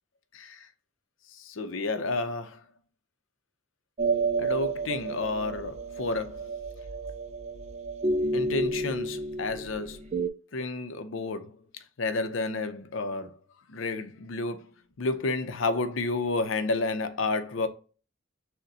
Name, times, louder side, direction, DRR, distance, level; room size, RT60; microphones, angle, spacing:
voice 1, 0.3-0.7 1.3-2.6 4.4-6.4 8.3-10.1 10.5-13.4 13.7-14.7 15.0-17.7, left 3 dB, 75° left, 0.5 m, -31 dB
sound 1, 4.0-10.3, right 3 dB, 35° right, 0.3 m, -30 dB
6.4 x 2.1 x 2.7 m
head